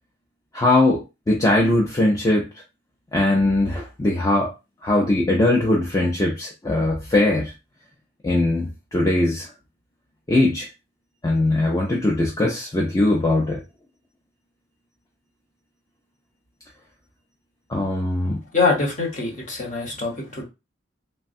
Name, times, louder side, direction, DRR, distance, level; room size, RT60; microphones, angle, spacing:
voice 1, 0.5-2.5 3.1-4.5 4.8-7.5 8.2-9.5 10.3-10.7 11.2-13.6 17.7-18.4, left 2 dB, 20° left, 0.4 m, -20 dB
voice 2, 18.5-20.4, left 4 dB, 40° left, 0.9 m, -23 dB
3.2 x 2.2 x 2.6 m
head